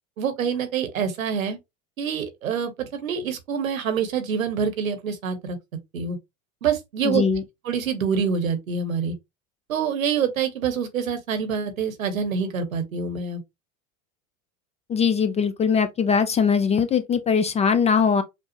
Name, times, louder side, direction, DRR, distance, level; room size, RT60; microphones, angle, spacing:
voice 1, 0.2-1.6 2.0-5.6 5.9-6.2 6.6-7.2 7.6-9.1 9.7-13.4, right 6 dB, 85° right, 1.0 m, -26 dB
voice 2, 7.0-7.4 14.9-18.2, left 6 dB, 20° left, 0.3 m, -21 dB
5.1 x 2.0 x 2.9 m
hypercardioid pair, 85°, 40 cm